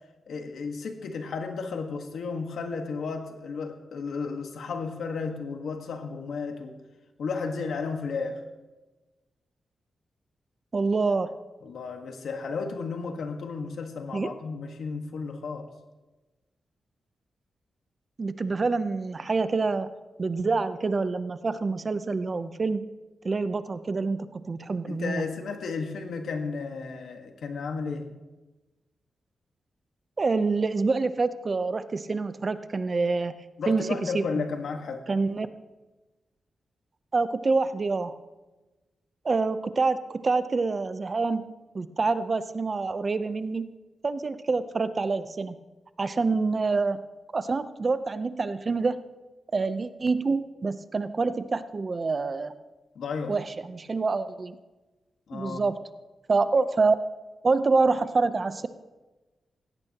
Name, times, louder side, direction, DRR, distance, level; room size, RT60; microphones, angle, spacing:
voice 1, 0.3-6.7 7.2-8.4 11.6-15.7 24.9-28.1 33.6-35.1 52.9-53.4 55.3-55.6, left 4 dB, 80° left, 5 dB, 1.5 m, -33 dB
voice 2, 10.7-11.3 14.1-14.3 18.2-19.9 20.2-22.9 23.2-25.3 30.2-33.4 33.7-34.4 35.1-35.5 37.1-38.2 39.2-41.5 41.7-43.7 44.0-45.6 46.0-47.0 47.3-49.0 49.5-52.5 53.3-54.6 55.3-55.8 56.3-57.0 57.4-58.7, right 4 dB, 40° right, 12 dB, 0.7 m, -26 dB
17.0 x 15.5 x 2.9 m, 1.2 s
cardioid pair, 95°, 0 cm